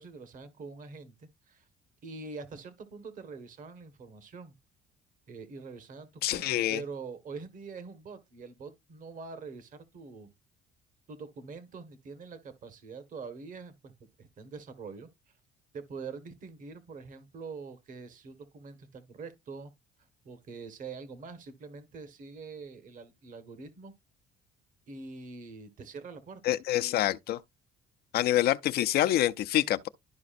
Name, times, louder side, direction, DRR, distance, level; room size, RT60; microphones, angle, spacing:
voice 1, 0.0-1.6 2.0-4.5 5.3-10.3 11.1-13.9 14.2-15.1 15.7-19.7 20.2-23.9 24.9-26.6, right 4 dB, 50° right, 1.5 m, -44 dB
voice 2, 6.2-6.8 26.4-27.4 28.1-29.9, left 13 dB, 70° left, 0.5 m, -26 dB
12.0 x 4.9 x 2.5 m
cardioid pair, 110°, 17 cm